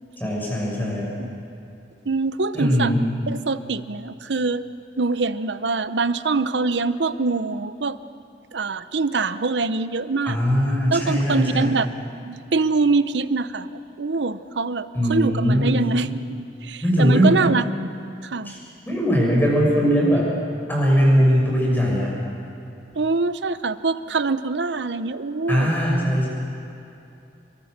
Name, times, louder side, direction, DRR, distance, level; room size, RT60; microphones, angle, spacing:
voice 1, 0.2-1.1 2.5-3.0 10.3-11.7 14.9-15.8 16.8-17.3 18.4-18.6 18.9-20.3 20.7-22.2 25.5-26.3, equal, 10° left, -3 dB, 6.5 m, -20 dB
voice 2, 2.1-2.9 3.3-4.6 5.0-8.0 8.5-10.4 10.9-11.9 12.2-17.9 18.2-18.5 22.9-25.7, right 3 dB, 80° right, 13 dB, 0.8 m, -24 dB
28.0 x 23.0 x 6.7 m, 2.7 s
head